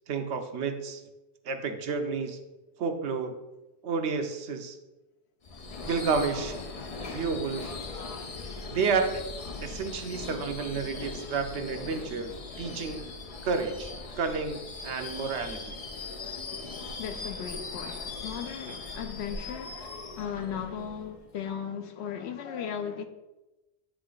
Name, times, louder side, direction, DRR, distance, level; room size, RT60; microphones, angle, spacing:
voice 1, 0.1-1.0 1.4-2.4 2.8-3.4 3.8-4.8 5.8-6.6 7.1-7.7 8.7-9.2 9.6-13.1 13.4-14.6 14.8-15.8, right 5 dB, 80° right, 1.0 m, -30 dB
Subway metro underground / Screech, 5.4-21.4, left 3 dB, 40° left, 0.6 m, -39 dB
voice 2, 17.0-19.9 20.2-23.0, left 8 dB, 80° left, 0.9 m, -36 dB
9.4 x 3.2 x 3.9 m
omnidirectional pair, 1.1 m